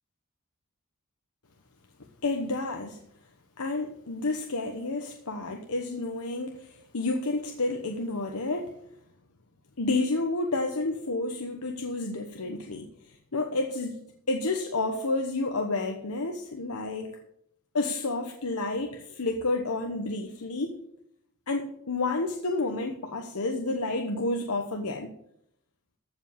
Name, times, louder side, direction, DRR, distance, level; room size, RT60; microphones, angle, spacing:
voice 1, 2.2-3.0 3.6-8.8 9.8-12.9 13.3-17.2 17.7-20.8 21.5-25.1, left 2 dB, 80° left, 3 dB, 1.1 m, -30 dB
14.5 x 5.5 x 7.1 m, 0.73 s
head